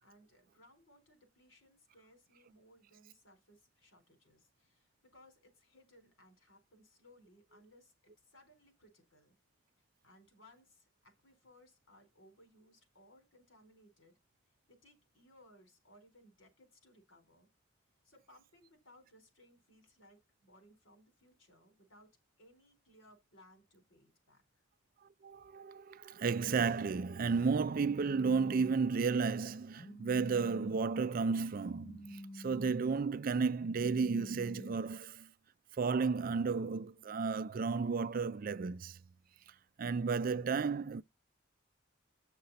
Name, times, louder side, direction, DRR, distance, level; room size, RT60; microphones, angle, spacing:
voice 1, 0.0-9.4 9.8-14.1 14.7-17.5 18.0-24.4, left 1 dB, 75° left, 4.1 m, -64 dB
voice 2, 25.2-35.3 35.8-39.0 39.8-41.0, right 5 dB, 45° right, 0.4 m, -33 dB
Telephone, 27.8-28.8 29.8-30.8 31.8-32.8 33.8-34.8, left 1 dB, 55° left, 2.2 m, -49 dB
8.0 x 6.7 x 4.1 m
head